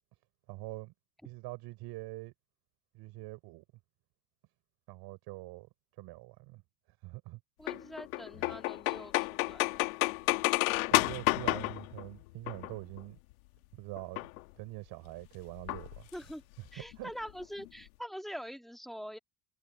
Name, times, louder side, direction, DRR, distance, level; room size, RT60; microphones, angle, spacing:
voice 1, 0.5-0.9 1.2-2.3 2.9-3.6 4.9-5.7 6.0-6.6 7.0-7.4 10.9-13.2 13.7-14.3 14.6-16.1 16.6-17.1, right 21 dB, 70° right, 5.8 m, -44 dB
voice 2, 7.6-9.8 16.1-16.4 16.7-19.2, equal, ahead, 2.0 m, -44 dB
sound 1, 7.7-13.0 14.0-14.4 15.7-16.3 16.7-16.8 16.9-17.0 17.3-17.7, left 22 dB, 85° left, 1.3 m, -31 dB
hypercardioid pair, 80°, 41 cm